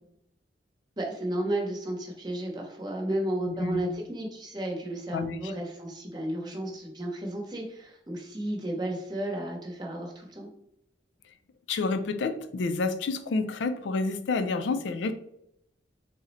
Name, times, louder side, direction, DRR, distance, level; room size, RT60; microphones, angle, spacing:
voice 1, 1.0-10.5, right 1 dB, 25° right, 0 dB, 0.8 m, -33 dB
voice 2, 5.1-5.5 11.7-15.1, left 3 dB, 80° left, 8 dB, 0.4 m, -29 dB
3.7 x 2.1 x 4.0 m, 0.77 s
head